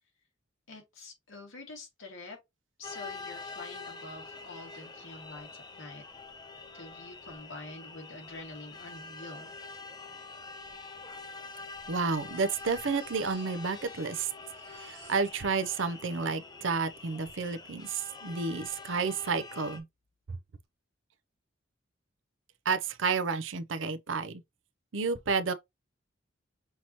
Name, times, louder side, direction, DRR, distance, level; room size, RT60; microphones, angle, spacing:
voice 1, 0.7-2.4 2.8-5.5 5.8-6.0 6.7-9.5, left 2 dB, 80° left, 2.3 m, -46 dB
sound 1, 2.8-19.8, left 4 dB, 20° left, 0.7 m, -45 dB
Crying sobbing, 9.9-10.0 10.2-10.3 11.1-14.0 14.3-16.8 17.7-17.8 18.1-18.2, right 6 dB, 55° right, 1.5 m, -57 dB
voice 2, 11.9-14.3 14.7-19.8 22.6-24.4 24.9-25.5, right 4 dB, 75° right, 0.6 m, -31 dB
5.7 x 3.0 x 2.9 m
head